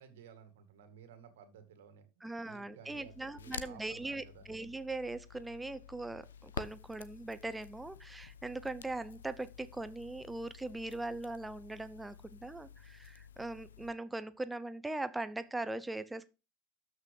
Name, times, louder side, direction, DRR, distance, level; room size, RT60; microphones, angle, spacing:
voice 1, 0.0-2.0 2.4-4.5, right 8 dB, 65° right, 2.2 m, -55 dB
voice 2, 2.2-16.3, right 2 dB, 10° right, 0.7 m, -40 dB
Crackle, 2.9-13.9, left 7 dB, 75° left, 0.8 m, -50 dB
13.0 x 6.1 x 3.9 m
figure-of-eight pair, 80°, 0 cm